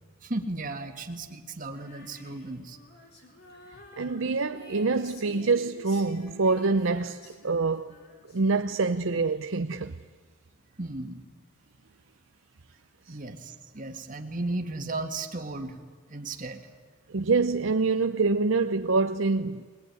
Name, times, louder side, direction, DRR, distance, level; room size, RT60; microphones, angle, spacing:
voice 1, 0.2-2.8 10.8-11.2 13.1-15.8 16.1-16.6, right 2 dB, 40° right, 1.9 m, -35 dB
Female singing, 1.7-9.1, left 2 dB, 50° left, 4.0 m, -50 dB
voice 2, 4.0-7.9 8.3-9.9 13.1-13.2 17.1-19.7, right 3 dB, 70° right, 0.7 m, -26 dB
21.5 x 20.0 x 9.5 m
head